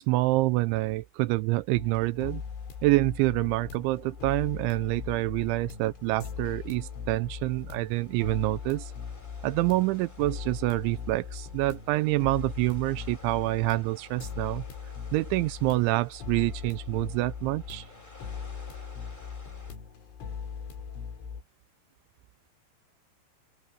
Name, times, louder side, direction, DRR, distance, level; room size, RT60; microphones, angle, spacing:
voice 1, 0.0-2.4 2.8-8.9 9.4-14.6 15.1-17.9, right 20 dB, 85° right, 2.9 m, -27 dB
sound 1, 1.7-21.4, left 6 dB, 85° left, 6.4 m, -40 dB
sound 2, 2.2-19.7, left 1 dB, 10° left, 5.5 m, -56 dB
open air
omnidirectional pair, 5.5 m